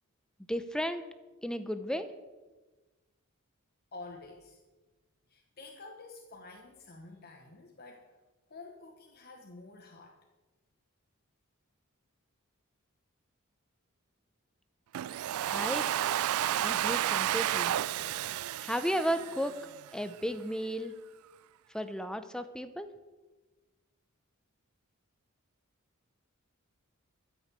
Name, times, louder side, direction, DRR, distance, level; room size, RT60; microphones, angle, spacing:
voice 1, 0.5-1.1 1.4-2.1 15.4-15.9 16.6-17.8 18.6-19.5 19.9-20.9 21.7-22.9, equal, 5° left, 10 dB, 0.6 m, -34 dB
voice 2, 3.9-4.6 5.3-8.1 8.5-10.2, left 3 dB, 45° left, 2 dB, 1.1 m, -49 dB
Domestic sounds home sounds, 14.9-19.9, right 12 dB, 75° right, 0.3 m, -31 dB
13.5 x 6.3 x 8.3 m, 1.2 s
head